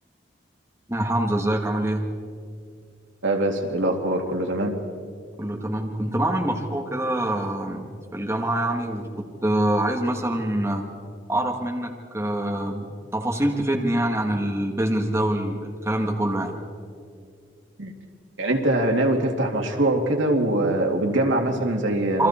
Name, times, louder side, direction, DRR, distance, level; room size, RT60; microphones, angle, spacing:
voice 1, 0.9-2.1 5.4-9.1 9.4-10.8 11.3-16.5 22.2-22.3, right 1 dB, 15° right, 1 dB, 1.6 m, -25 dB
voice 2, 3.2-4.8 17.8-17.9 18.4-22.3, right 1 dB, 80° right, 2 dB, 2.5 m, -23 dB
28.0 x 24.0 x 4.4 m, 2.2 s
head